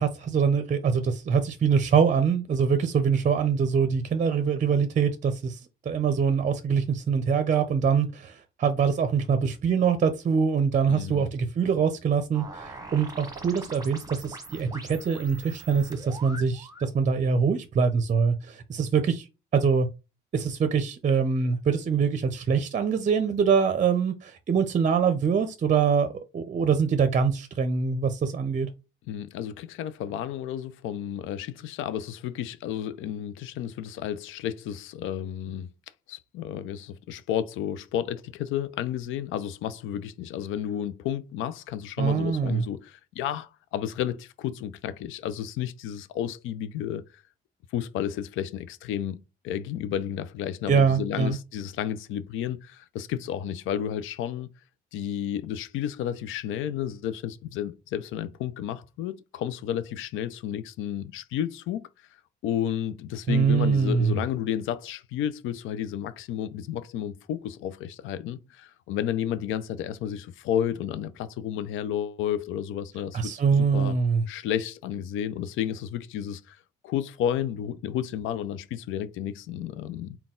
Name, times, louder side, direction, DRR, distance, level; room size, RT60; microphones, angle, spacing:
voice 1, 0.0-5.6 5.9-19.3 19.5-19.9 20.3-26.1 26.3-28.7 42.0-42.6 50.7-51.4 63.3-64.1 73.1-74.2, right 6 dB, 40° right, 0.6 m, -24 dB
voice 2, 10.9-11.3 29.1-35.7 36.1-47.0 47.7-49.2 49.4-54.5 54.9-61.8 62.4-74.0 74.3-76.6 76.8-80.2, left 10 dB, 85° left, 0.4 m, -32 dB
sound 1, 12.3-16.9, right 3 dB, 20° right, 1.0 m, -43 dB
4.0 x 2.3 x 3.7 m
cardioid pair, 90°, 20 cm